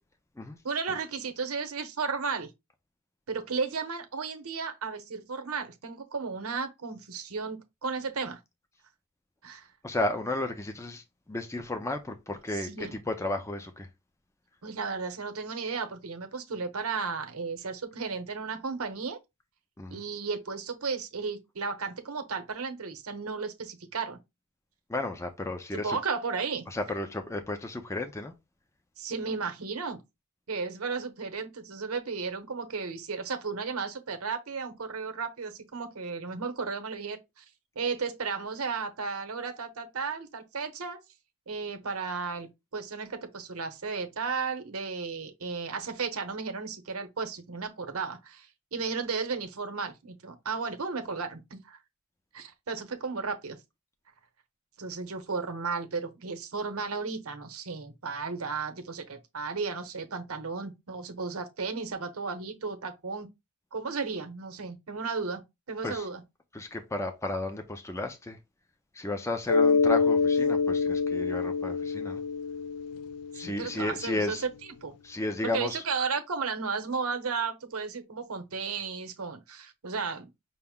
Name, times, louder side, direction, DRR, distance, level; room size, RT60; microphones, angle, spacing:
voice 1, 0.6-2.5 3.3-8.4 9.4-9.7 12.5-12.9 14.6-19.2 19.9-24.2 25.7-26.7 29.0-30.0 30.5-37.5 37.7-41.0 41.5-51.8 52.3-53.6 54.8-63.3 63.7-65.4 65.7-66.2 73.3-74.9 75.4-80.3, right 5 dB, 80° right, 0.8 m, -34 dB
voice 2, 9.8-13.9 19.8-20.0 24.9-26.0 26.7-28.3 65.8-66.1 66.5-68.4 68.9-72.2 73.3-74.4 75.0-75.8, left 2 dB, 15° left, 0.5 m, -33 dB
Mallet percussion, 69.5-73.9, left 5 dB, 85° left, 0.3 m, -26 dB
5.6 x 2.1 x 3.5 m
head